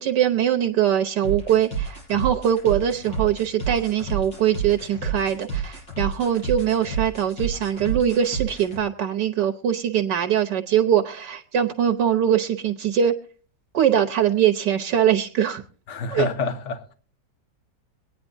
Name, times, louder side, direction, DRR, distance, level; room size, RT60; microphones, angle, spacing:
voice 1, 0.0-13.1 13.7-15.6 16.1-16.2, right 9 dB, 75° right, 1.6 m, -22 dB
sound 1, 1.2-8.8, right 6 dB, 80° left, 6.9 m, -30 dB
voice 2, 15.9-16.9, left 4 dB, 45° left, 1.5 m, -27 dB
23.5 x 9.5 x 2.6 m
omnidirectional pair, 1.9 m